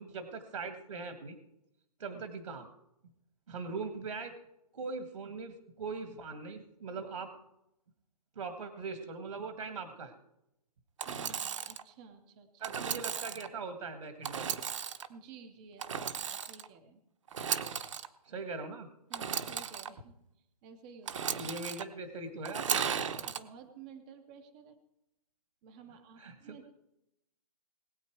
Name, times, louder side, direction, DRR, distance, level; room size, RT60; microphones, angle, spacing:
voice 1, 0.0-1.4 2.0-2.7 3.5-4.3 4.7-7.3 8.4-10.1 12.6-14.6 18.3-18.9 21.3-23.1 26.2-26.6, right 4 dB, 65° right, 7 dB, 1.8 m, -41 dB
Engine / Sawing, 11.0-11.8 12.6-13.5 14.2-15.1 15.8-16.7 17.3-18.1 19.1-19.9 21.1-21.8 22.4-23.4, right 7 dB, 50° right, 0.9 m, -35 dB
voice 2, 11.1-12.8 15.1-17.0 19.1-20.1 20.6-21.4 23.3-24.8 25.6-26.7, right 5 dB, 10° right, 7 dB, 0.5 m, -53 dB
20.0 x 8.5 x 4.6 m, 0.85 s
hypercardioid pair, 170°, 20 cm